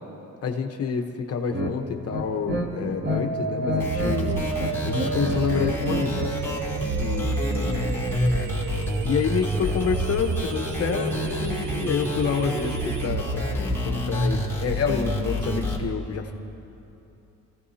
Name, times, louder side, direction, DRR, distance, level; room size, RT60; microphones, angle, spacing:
voice 1, 0.4-4.4 4.8-6.2 7.0-7.9 9.0-16.3, left 6 dB, 55° left, 5 dB, 1.1 m, -28 dB
sound 1, 1.5-1.7 2.1-3.2 3.5-4.2 4.4-6.3, equal, 35° right, 2.3 m, -28 dB
sound 2, 3.1-13.1, right 5 dB, 80° right, 1.1 m, -34 dB
sound 3, 3.8-15.8, equal, 10° left, 2.7 m, -28 dB
28.0 x 15.5 x 2.8 m, 2.9 s
cardioid pair, 90°, 30 cm